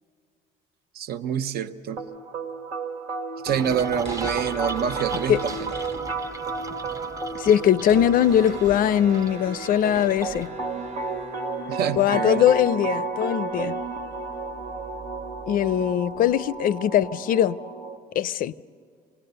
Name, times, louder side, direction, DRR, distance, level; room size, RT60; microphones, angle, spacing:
voice 1, 0.9-2.0 3.4-5.7 11.7-12.5, right 8 dB, 65° right, 0.8 m, -27 dB
sound 1, 2.0-18.0, right 3 dB, 90° right, 2.0 m, -33 dB
sound 2, 3.5-10.5, right 3 dB, 20° right, 0.6 m, -38 dB
sound 3, 4.0-6.6 6.9-7.0 7.2-16.6, right 3 dB, 40° right, 1.2 m, -42 dB
voice 2, 7.3-10.5 12.0-13.8 15.5-17.6 18.1-18.5, left 10 dB, 55° left, 0.5 m, -21 dB
27.0 x 19.0 x 6.8 m
cardioid pair, 110°, 17 cm